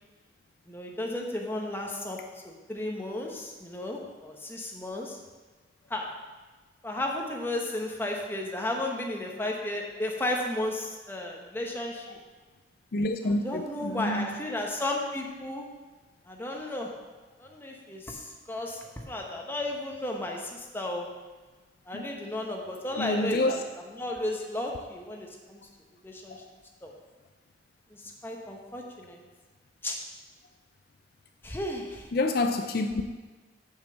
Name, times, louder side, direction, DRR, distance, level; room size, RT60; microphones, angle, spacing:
voice 1, 0.7-2.2 2.4-5.2 5.9-6.1 6.8-12.2 13.2-15.6 16.3-16.9 17.4-21.1 21.9-23.6 23.9-25.6 26.0-26.4 26.8-26.9 27.9-29.2 29.8-30.0 31.4-32.1, left 1 dB, 10° left, 0 dB, 1.0 m, -34 dB
voice 2, 12.9-14.3 21.9-22.1 23.0-23.6 26.3-26.4 32.1-33.0, left 2 dB, 55° left, 6 dB, 0.5 m, -28 dB
6.8 x 5.7 x 6.9 m, 1.3 s
head